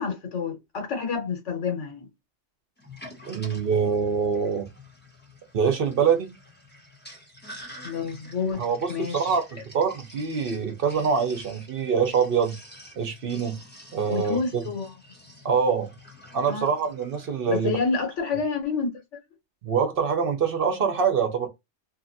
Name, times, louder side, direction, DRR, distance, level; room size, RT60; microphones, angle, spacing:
voice 1, 0.0-2.1 7.8-8.6 8.9-9.4 14.1-14.9 16.4-16.7 17.5-18.9, left 5 dB, 85° left, 1.3 m, -28 dB
Sink (filling or washing), 2.8-17.8, left 1 dB, 10° left, 0.9 m, -48 dB
voice 2, 3.3-4.7 5.5-6.3 8.6-8.8 9.1-12.5 13.0-13.6 13.9-14.6 15.4-15.9 16.3-17.7 19.6-21.5, right 6 dB, 60° right, 0.8 m, -24 dB
2.8 x 2.4 x 2.6 m
omnidirectional pair, 1.2 m